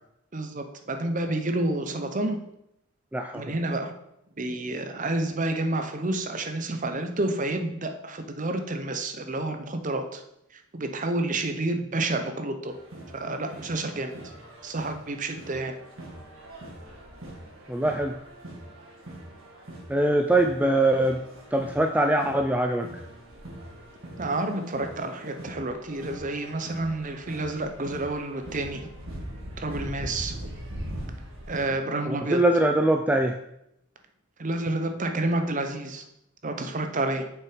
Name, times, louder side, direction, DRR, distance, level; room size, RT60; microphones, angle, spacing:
voice 1, 0.3-2.4 3.3-4.0 4.4-10.2 10.5-12.7 13.1-14.1 14.6-15.7 24.2-28.9 29.6-30.4 31.5-32.4 34.4-36.0 36.4-37.3, right 2 dB, 40° right, 6 dB, 0.8 m, -29 dB
voice 2, 3.1-3.5 17.7-18.2 19.9-21.2 21.5-22.9 32.1-33.4, right 1 dB, 5° right, 5 dB, 0.3 m, -23 dB
sound 1, 12.7-31.7, right 1 dB, 70° right, 1.8 m, -42 dB
6.7 x 5.8 x 5.0 m, 0.80 s
head